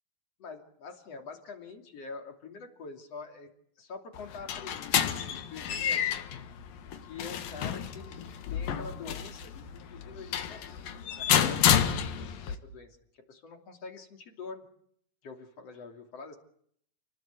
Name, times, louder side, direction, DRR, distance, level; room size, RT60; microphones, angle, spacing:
voice 1, 0.4-3.5 3.8-6.2 7.0-8.2 8.5-13.0 13.3-14.7 15.2-16.4, left 4 dB, 45° left, 6 dB, 3.6 m, -45 dB
sound 1, 4.1-12.6, left 9 dB, 70° left, 3.4 m, -30 dB
29.5 x 20.0 x 8.3 m, 0.68 s
omnidirectional pair, 4.3 m